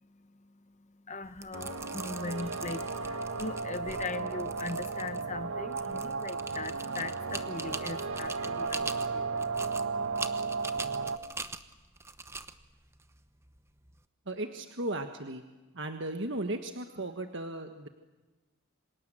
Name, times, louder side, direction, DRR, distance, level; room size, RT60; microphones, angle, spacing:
voice 1, 1.1-9.5 10.0-10.4, left 3 dB, 30° left, 11 dB, 0.8 m, -40 dB
sound 1, 1.2-14.0, right 3 dB, 10° right, 0.9 m, -44 dB
sound 2, 1.5-11.2, right 4 dB, 70° right, 1.4 m, -34 dB
voice 2, 14.2-15.4 15.7-17.9, right 1 dB, 55° right, 6 dB, 1.5 m, -36 dB
28.0 x 26.0 x 7.7 m, 1.2 s
head